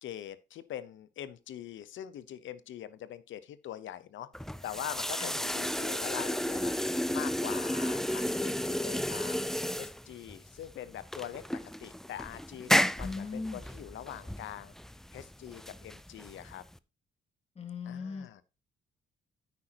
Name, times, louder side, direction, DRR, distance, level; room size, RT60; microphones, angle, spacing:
voice 1, 0.0-4.3 4.6-9.4 9.8-14.7 15.1-16.6 17.8-18.4, left 11 dB, 75° left, 0.9 m, -43 dB
sound 1, 4.3-16.8, equal, ahead, 0.4 m, -33 dB
voice 2, 13.0-13.6 17.6-18.3, left 4 dB, 30° left, 2.5 m, -39 dB
9.5 x 8.9 x 2.9 m
cardioid pair, 90°, 20 cm